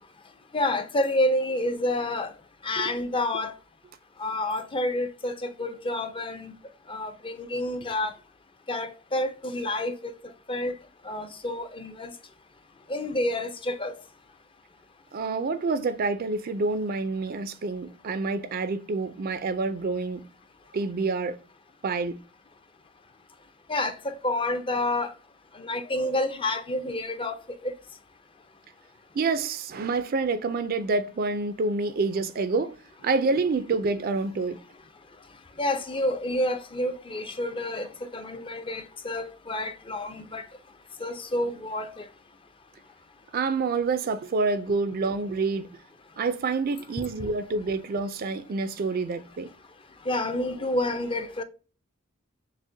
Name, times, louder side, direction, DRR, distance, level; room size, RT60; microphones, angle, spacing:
voice 1, 0.5-2.3 2.6-3.5 4.2-6.5 6.9-8.1 8.7-10.1 10.5-10.7 11.0-12.1 12.9-13.9 23.7-25.1 25.6-27.4 27.6-27.7 35.6-37.9 38.1-40.4 41.0-42.0 50.1-51.4, left 1 dB, 25° left, 0.5 m, -29 dB
voice 2, 15.1-20.3 20.7-21.4 21.8-22.2 29.1-32.7 33.0-34.6 43.3-45.7 46.2-49.5, right 3 dB, 45° right, 0.4 m, -27 dB
6.2 x 2.1 x 2.6 m
head